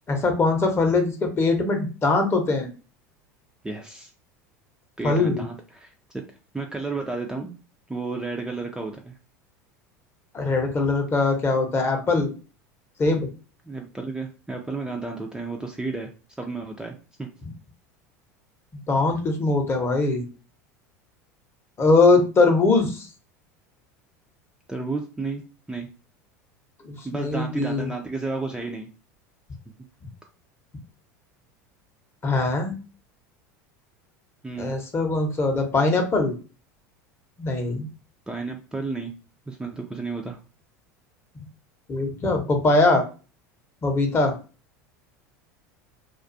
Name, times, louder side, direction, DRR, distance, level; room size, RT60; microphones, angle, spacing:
voice 1, 0.1-2.7 5.0-5.4 10.3-12.3 13.0-13.3 17.4-17.5 18.9-20.2 21.8-23.1 26.8-27.9 32.2-32.7 34.6-36.3 37.4-37.9 41.9-43.0 43.8-44.3, left 3 dB, 30° left, 4 dB, 0.7 m, -21 dB
voice 2, 3.6-4.1 5.0-5.9 6.5-7.5 7.9-9.1 13.6-16.1 16.4-17.3 24.7-25.4 25.7-25.9 27.0-28.9 34.4-34.7 38.3-39.1 39.5-40.4, right 3 dB, 10° right, 1 dB, 0.4 m, -32 dB
2.3 x 2.3 x 2.6 m, 0.34 s
hypercardioid pair, 85°, 9 cm